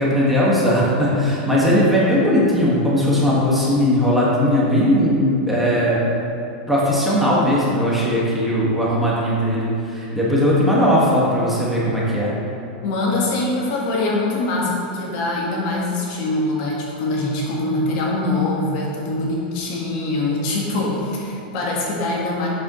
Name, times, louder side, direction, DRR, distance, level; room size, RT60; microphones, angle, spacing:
voice 1, 0.0-6.0 6.7-12.3, equal, 5° right, -7 dB, 1.7 m, -18 dB
voice 2, 12.8-22.5, left 2 dB, 55° left, -3 dB, 1.7 m, -23 dB
8.1 x 6.9 x 3.1 m, 2.8 s
supercardioid pair, 135°, 5 cm